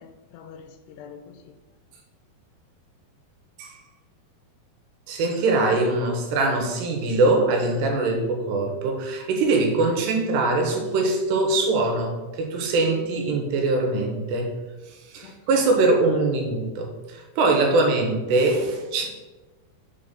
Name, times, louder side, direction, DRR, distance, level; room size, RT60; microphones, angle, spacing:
voice 1, 0.0-1.5 15.2-15.8, left 7 dB, 85° left, 8 dB, 2.6 m, -45 dB
voice 2, 5.1-14.5 14.9-19.1, right 2 dB, 85° right, 2 dB, 3.2 m, -22 dB
6.6 x 4.1 x 5.1 m, 1.2 s
omnidirectional pair, 4.7 m